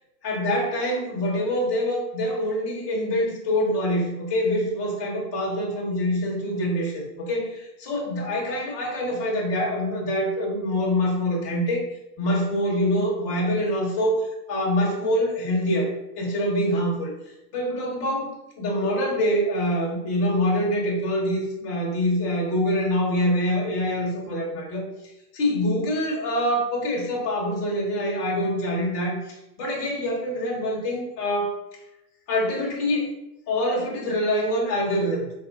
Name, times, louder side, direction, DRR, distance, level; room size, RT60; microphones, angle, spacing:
voice 1, 0.2-11.8 12.2-17.1 17.5-24.8 25.3-29.2 29.6-31.5 32.3-33.1 33.5-35.2, equal, 20° left, -3 dB, 0.8 m, -25 dB
4.4 x 2.3 x 3.9 m, 0.90 s
hypercardioid pair, 165°, 46 cm